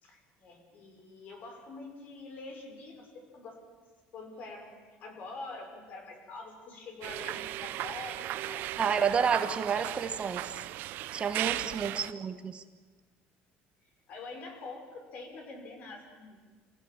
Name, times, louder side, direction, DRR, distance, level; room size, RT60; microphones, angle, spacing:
voice 1, 0.0-3.6 4.1-8.7 11.8-12.1 14.1-16.4, left 3 dB, 50° left, 4 dB, 6.1 m, -45 dB
sound 1, 7.0-12.1, right 15 dB, 65° right, 0.8 m, -36 dB
voice 2, 8.8-10.7 11.1-12.6, right 6 dB, 30° right, 8 dB, 1.4 m, -30 dB
28.0 x 17.0 x 8.9 m, 1.4 s
cardioid pair, 125°, 4 cm